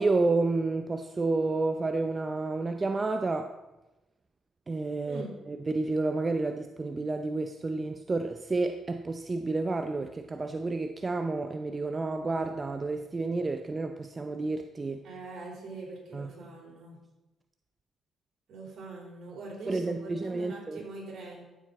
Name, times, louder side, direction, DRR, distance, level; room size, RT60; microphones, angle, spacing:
voice 1, 0.0-3.5 4.7-15.0 16.1-16.3 19.7-20.8, right 3 dB, 25° right, 7 dB, 0.6 m, -30 dB
voice 2, 15.0-17.0 18.5-21.4, right 2 dB, 65° right, -3 dB, 4.5 m, -43 dB
14.0 x 7.5 x 4.2 m, 1.0 s
cardioid pair, 90°, 0 cm